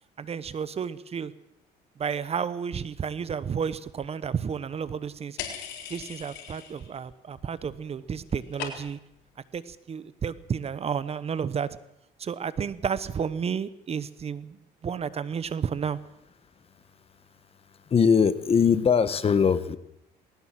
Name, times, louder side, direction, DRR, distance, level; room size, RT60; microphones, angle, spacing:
voice 1, 0.2-1.3 2.0-5.4 5.9-9.0 9.5-11.7 12.2-14.6 14.8-16.0, right 7 dB, 35° right, 16 dB, 1.0 m, -31 dB
sound 1, 5.4-7.0 7.3-7.8 8.1-9.1, left 9 dB, 90° left, 4.0 m, -39 dB
voice 2, 17.9-19.8, left 6 dB, 35° left, 14 dB, 1.3 m, -21 dB
20.0 x 18.0 x 7.6 m, 0.80 s
cardioid pair, 110°, 17 cm